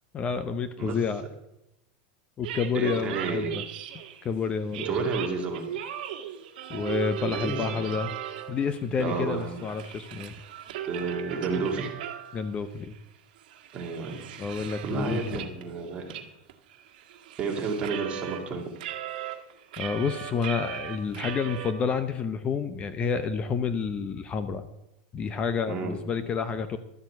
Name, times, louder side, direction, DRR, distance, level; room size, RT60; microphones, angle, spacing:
voice 1, 0.1-1.2 2.4-3.6 4.2-5.0 6.7-8.1 8.5-10.3 12.3-12.9 14.4-15.5 19.8-24.6 25.1-26.8, left 5 dB, 25° left, 11 dB, 0.7 m, -29 dB
sound 1, 2.4-4.3 4.7-8.7 9.1-12.5 12.9-13.0 13.4-15.6 16.1-16.2 16.5-18.4 18.8-21.7, right 10 dB, 70° right, 1.6 m, -37 dB
voice 2, 2.7-3.5 4.8-5.7 7.2-7.9 9.0-9.6 10.9-11.9 13.7-14.3 14.8-16.1 17.4-18.6 25.7-26.0, right 4 dB, 25° right, 0 dB, 2.5 m, -31 dB
12.5 x 7.3 x 8.0 m, 0.88 s
supercardioid pair, 145°, 5 cm